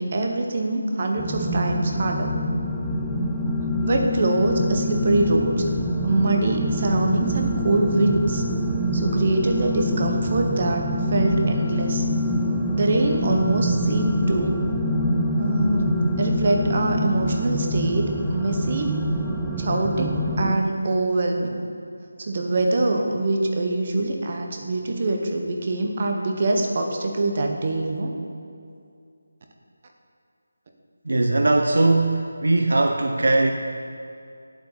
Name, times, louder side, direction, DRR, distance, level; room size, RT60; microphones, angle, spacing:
voice 1, 0.0-2.4 3.8-5.6 6.0-8.4 8.9-12.1 12.7-14.6 15.4-18.9 19.6-21.6 22.2-28.1, right 2 dB, 35° right, 2 dB, 0.9 m, -24 dB
sound 1, 1.2-20.5, equal, 5° right, 0.4 m, -25 dB
voice 2, 31.1-33.5, right 2 dB, 75° right, 4 dB, 0.6 m, -20 dB
8.5 x 7.7 x 4.3 m, 2.4 s
figure-of-eight pair, 175°, 0 cm